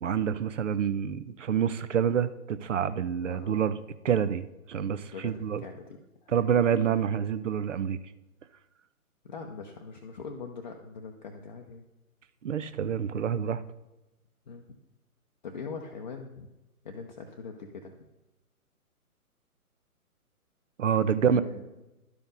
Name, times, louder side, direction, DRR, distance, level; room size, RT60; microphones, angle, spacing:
voice 1, 0.0-3.8 4.0-5.6 6.3-8.0 12.4-13.6 20.8-21.4, right 8 dB, 55° right, 13 dB, 0.6 m, -27 dB
voice 2, 3.2-3.6 5.0-6.5 9.2-11.9 14.5-14.8 15.4-16.5 16.8-17.9 21.3-21.6, left 5 dB, 30° left, 2 dB, 0.6 m, -42 dB
11.5 x 5.1 x 3.9 m, 1.0 s
figure-of-eight pair, 135°, 45 cm